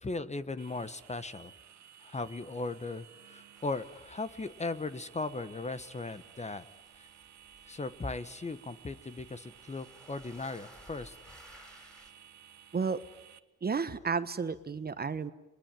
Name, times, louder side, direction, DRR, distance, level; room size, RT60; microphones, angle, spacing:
voice 1, 0.0-1.5 2.0-6.6 7.0-7.1 7.7-11.2, left 3 dB, 20° left, 13 dB, 1.2 m, -38 dB
sound 1, 0.6-13.4, right 9 dB, 65° right, 1.4 m, -56 dB
sound 2, 3.5-5.2 5.4-12.1, equal, 5° left, 6.1 m, -58 dB
voice 2, 13.6-15.3, right 5 dB, 30° right, 13 dB, 1.2 m, -32 dB
29.0 x 21.0 x 9.1 m, 1.0 s
cardioid pair, 90°, 30 cm